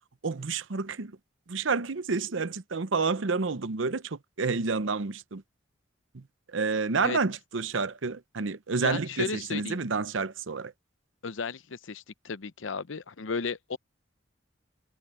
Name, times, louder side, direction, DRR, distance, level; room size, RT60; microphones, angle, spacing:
voice 1, 0.2-1.2 1.5-5.4 6.1-6.2 6.5-10.7, right 4 dB, 80° right, 0.8 m, -29 dB
voice 2, 8.8-9.8 11.2-13.8, left 5 dB, 80° left, 0.8 m, -34 dB
head